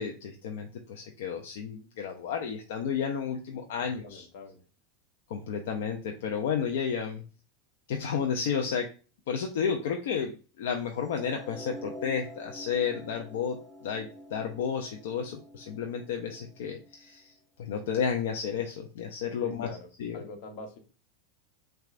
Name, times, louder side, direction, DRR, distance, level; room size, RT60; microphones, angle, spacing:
voice 1, 0.0-4.2 5.3-7.2 7.9-8.9 9.3-13.6 13.8-17.3 17.6-19.7 20.0-20.2, left 7 dB, 75° left, 3 dB, 0.5 m, -32 dB
voice 2, 3.5-4.6 19.4-19.9 20.1-20.8, left 2 dB, 60° left, 5 dB, 1.0 m, -45 dB
sound 1, 10.9-17.2, equal, ahead, 0.5 m, -47 dB
5.9 x 2.3 x 2.4 m, 0.35 s
supercardioid pair, 120°, 0 cm